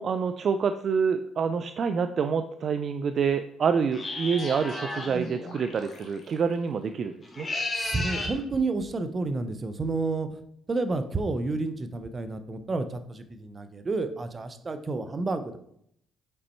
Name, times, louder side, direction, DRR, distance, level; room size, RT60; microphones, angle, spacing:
voice 1, 0.0-7.5, right 6 dB, 55° right, 9 dB, 0.3 m, -27 dB
sound 1, 3.9-5.2 7.2-8.4, left 2 dB, 30° left, 1.5 m, -33 dB
sound 2, 4.4-7.2, equal, 50° left, 1.4 m, -43 dB
voice 2, 7.7-10.3 10.7-15.6, right 3 dB, 35° right, 9 dB, 0.7 m, -30 dB
5.3 x 4.1 x 4.4 m, 0.71 s
supercardioid pair, 70°, 0 cm